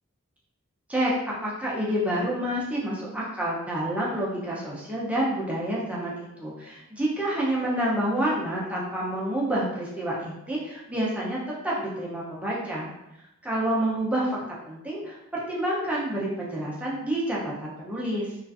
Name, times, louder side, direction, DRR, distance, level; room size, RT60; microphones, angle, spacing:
voice 1, 1.4-11.4 11.6-12.9 13.4-14.4 14.7-18.3, right 1 dB, 5° right, -6 dB, 0.4 m, -28 dB
2.4 x 2.4 x 2.3 m, 0.89 s
head